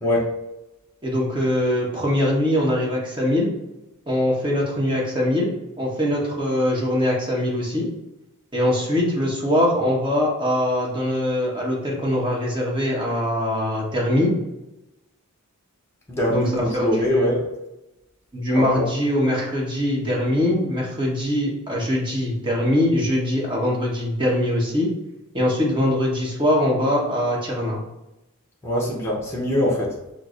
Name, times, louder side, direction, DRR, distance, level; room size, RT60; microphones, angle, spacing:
voice 1, 1.0-3.5 4.1-5.5 5.8-7.9 8.5-14.3 16.3-17.3 18.3-24.9 25.3-27.8, left 1 dB, 20° right, -4 dB, 1.0 m, -22 dB
voice 2, 16.1-17.5 18.5-18.9 28.6-29.9, equal, 10° left, -3 dB, 0.7 m, -23 dB
5.8 x 2.0 x 2.4 m, 0.94 s
head